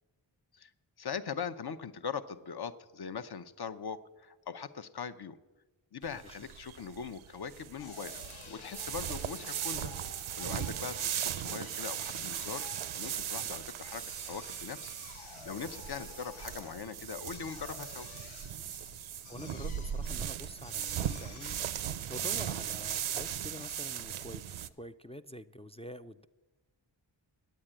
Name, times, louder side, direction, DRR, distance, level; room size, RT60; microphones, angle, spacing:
voice 1, 1.0-5.4 5.9-8.2 8.5-9.9 10.4-12.7 12.9-14.9 15.4-18.1, left 6 dB, 55° left, 12 dB, 0.7 m, -41 dB
sound 1, 6.0-24.7, right 10 dB, 85° right, 0.6 m, -38 dB
Drill, 7.8-23.1, left 8 dB, 90° left, 0.7 m, -53 dB
voice 2, 19.3-24.5 24.8-26.3, left 1 dB, 15° left, 8 dB, 0.3 m, -47 dB
9.6 x 9.0 x 8.8 m, 1.2 s
cardioid pair, 55°, 47 cm